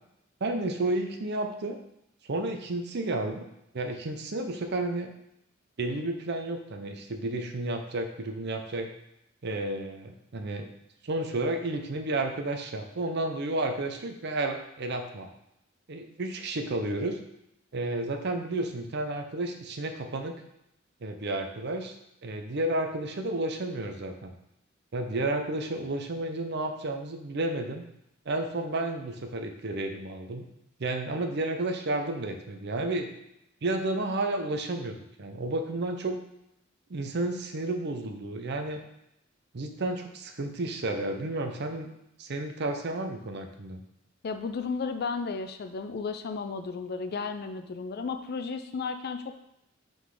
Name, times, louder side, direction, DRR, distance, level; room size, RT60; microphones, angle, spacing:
voice 1, 0.4-1.8 2.3-3.5 3.7-5.1 5.8-8.9 9.4-10.7 11.0-15.3 15.9-17.2 17.7-20.4 21.0-21.9 22.2-24.3 24.9-27.8 28.3-30.5 30.8-33.1 33.6-36.2 36.9-38.8 39.5-41.9 42.2-43.8, right 2 dB, 55° right, 6 dB, 0.6 m, -31 dB
voice 2, 44.2-49.4, left 4 dB, 50° left, 8 dB, 0.4 m, -33 dB
5.8 x 3.9 x 4.8 m, 0.82 s
head